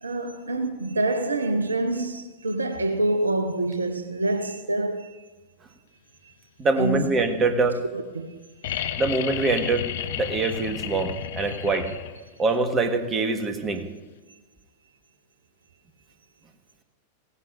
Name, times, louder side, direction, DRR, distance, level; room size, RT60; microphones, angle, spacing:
voice 1, 0.0-5.3 6.8-7.4 7.9-8.4 11.5-11.9 14.3-14.4, right 2 dB, 75° right, 0.8 m, -27 dB
voice 2, 6.6-7.8 9.0-9.9 10.2-11.9 12.4-13.8, right 3 dB, 20° right, 1.4 m, -24 dB
sound 1, 8.6-12.4 14.1-14.2, left 10 dB, 55° left, 0.6 m, -32 dB
17.0 x 15.5 x 2.6 m
figure-of-eight pair, 90°, 0 cm